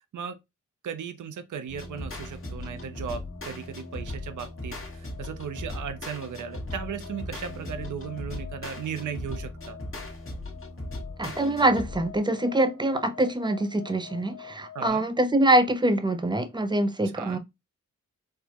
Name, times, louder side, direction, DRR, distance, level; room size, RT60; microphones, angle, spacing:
voice 1, 0.8-9.8 14.7-15.1 17.2-17.4, right 7 dB, 70° right, 0.5 m, -36 dB
sound 1, 1.5-14.9, left 9 dB, 75° left, 1.3 m, -49 dB
sound 2, 1.7-12.2, left 1 dB, 40° left, 1.3 m, -38 dB
voice 2, 11.2-17.4, right 1 dB, 15° right, 0.5 m, -24 dB
4.4 x 2.0 x 2.8 m
wide cardioid pair, 85°, 32 cm